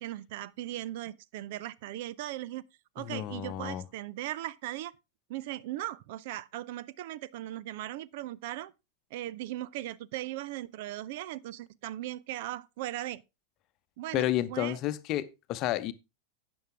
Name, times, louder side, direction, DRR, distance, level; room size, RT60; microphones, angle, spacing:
voice 1, 0.0-2.6 3.0-4.9 5.3-8.7 9.1-13.2 14.0-14.8, right 14 dB, 50° right, 0.5 m, -38 dB
voice 2, 3.0-3.8 14.1-15.9, left 13 dB, 40° left, 0.9 m, -31 dB
12.5 x 8.7 x 3.5 m
figure-of-eight pair, 90°, 0 cm